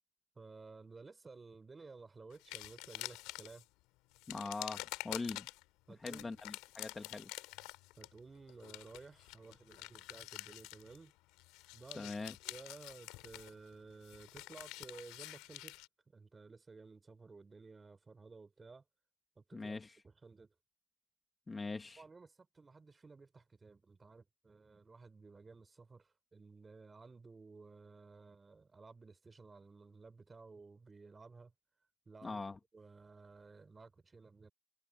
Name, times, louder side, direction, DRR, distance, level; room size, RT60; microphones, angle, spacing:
voice 1, 0.4-3.7 5.9-6.4 8.0-11.1 11.7-12.1 12.4-18.8 19.4-19.8 20.0-20.5 22.0-31.5 32.1-32.4 32.7-34.5, right 4 dB, 15° right, 3.6 m, -55 dB
sound 1, 2.3-3.6 4.1-5.6 6.1-11.1 11.4-15.9, left 21 dB, 55° left, 2.5 m, -48 dB
voice 2, 4.3-5.5 6.0-7.3 11.9-12.3 19.5-20.0 21.5-22.0 32.2-32.6, left 3 dB, 10° left, 1.8 m, -42 dB
supercardioid pair, 140°, 0 cm